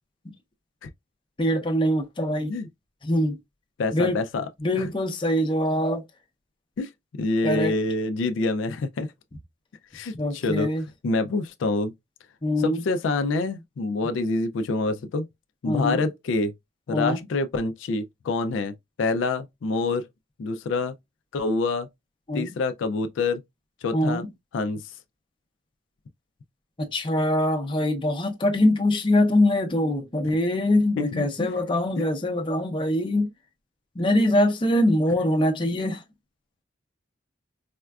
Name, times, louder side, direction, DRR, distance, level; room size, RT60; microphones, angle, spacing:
voice 1, 1.4-2.5 3.0-3.4 3.9-4.2 4.6-6.0 7.4-7.7 10.2-10.8 12.4-12.8 15.6-16.0 16.9-17.2 22.3-22.5 23.9-24.3 26.9-33.3 34.0-36.0, left 1 dB, 25° left, 0.6 m, -23 dB
voice 2, 3.8-4.4 4.8-4.9 6.8-9.1 9.9-10.7 11.0-11.9 12.6-15.3 15.6-16.5 16.9-20.1 20.4-20.9 21.3-21.9 22.3-23.4 23.8-24.2 24.5-25.0 30.2-30.4 31.0-31.5 32.0-32.1, left 3 dB, 80° left, 0.4 m, -26 dB
4.2 x 2.3 x 2.3 m
head